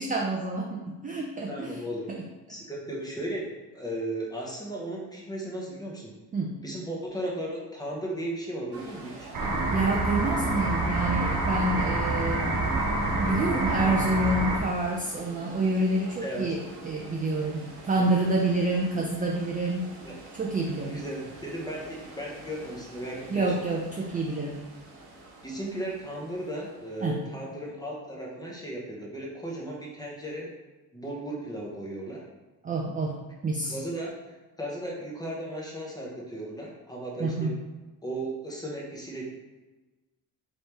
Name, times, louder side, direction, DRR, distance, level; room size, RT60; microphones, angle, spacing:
voice 1, 0.0-1.8 2.1-2.2 6.3-6.6 9.7-12.5 13.2-19.9 20.3-21.0 23.3-24.6 27.0-27.2 32.6-33.7 37.2-37.5, right 2 dB, 20° right, -1 dB, 0.3 m, -28 dB
voice 2, 1.5-2.1 2.5-6.1 6.6-9.3 16.2-16.4 18.0-18.1 20.0-20.1 20.9-23.6 25.4-30.5 30.9-32.2 33.7-37.5 38.0-39.3, right 1 dB, 10° left, -3 dB, 0.8 m, -36 dB
sound 1, 8.7-27.4, right 2 dB, 90° right, 1.1 m, -45 dB
sound 2, 9.3-14.6, right 2 dB, 50° right, 0.9 m, -27 dB
4.4 x 3.2 x 3.3 m, 1.2 s
wide cardioid pair, 160°, 40 cm